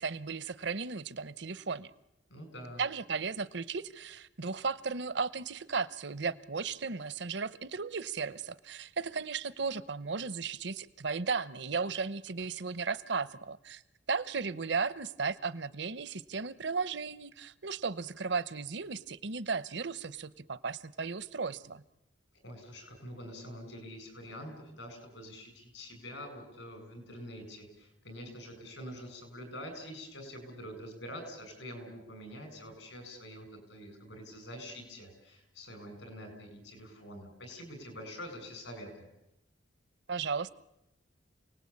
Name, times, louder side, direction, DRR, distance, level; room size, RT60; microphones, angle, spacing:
voice 1, 0.0-1.9 2.8-13.8 14.1-21.8 40.1-40.5, right 5 dB, 65° right, 17 dB, 0.9 m, -35 dB
voice 2, 2.3-2.8 22.4-39.1, equal, 80° left, 6 dB, 7.7 m, -46 dB
28.0 x 19.0 x 8.7 m, 0.88 s
head